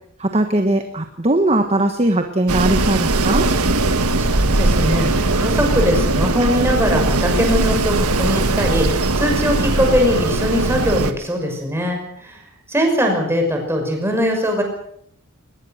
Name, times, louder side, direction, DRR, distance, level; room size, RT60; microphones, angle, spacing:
voice 1, 0.2-3.5, right 1 dB, 30° right, 6 dB, 1.4 m, -19 dB
Wind, 2.5-11.1, right 2 dB, 85° right, 1.6 m, -19 dB
voice 2, 4.2-14.6, equal, 10° right, 2 dB, 6.0 m, -21 dB
22.5 x 20.0 x 6.6 m, 0.69 s
head